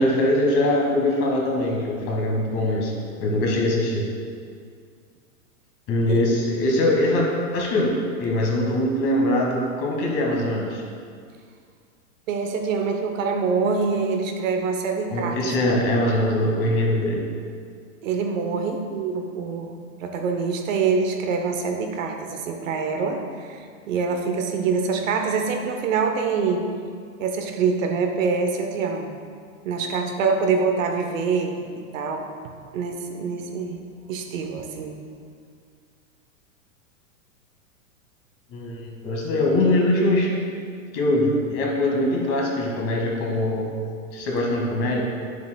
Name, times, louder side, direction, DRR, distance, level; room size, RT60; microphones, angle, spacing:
voice 1, 0.0-2.9 3.2-4.1 5.9-7.2 7.5-7.9 8.2-10.8 15.1-17.3 38.5-40.3 40.9-43.7 44.1-45.0, left 1 dB, 35° left, -1 dB, 1.4 m, -22 dB
voice 2, 12.3-15.5 18.0-23.6 23.9-26.7 27.2-29.2 29.6-32.3 32.7-33.8 34.1-35.0, right 5 dB, 65° right, 4 dB, 0.9 m, -25 dB
8.7 x 7.1 x 2.2 m, 2.2 s
hypercardioid pair, 140°, 42 cm